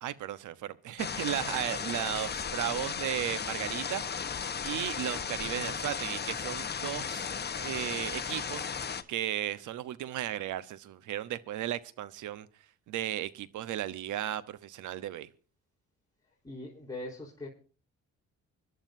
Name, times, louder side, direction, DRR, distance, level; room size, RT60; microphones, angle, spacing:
voice 1, 0.0-4.0 4.6-7.3 7.5-8.7 9.1-12.5 12.9-15.3, right 12 dB, 80° right, 1.0 m, -35 dB
sound 1, 1.0-9.0, left 6 dB, 35° left, 1.1 m, -35 dB
voice 2, 16.4-17.5, left 2 dB, 10° left, 4.1 m, -41 dB
25.5 x 11.5 x 2.7 m
cardioid pair, 90°, 30 cm